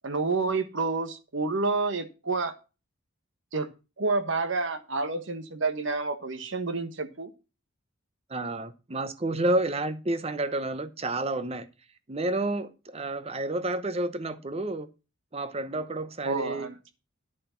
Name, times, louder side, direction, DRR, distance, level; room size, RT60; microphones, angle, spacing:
voice 1, 0.0-2.5 3.5-3.7 4.0-7.3 16.2-16.8, right 3 dB, 65° right, 1.3 m, -29 dB
voice 2, 8.3-11.7 12.1-14.9 15.3-16.7, right 2 dB, 30° right, 0.8 m, -30 dB
10.5 x 6.5 x 5.7 m
head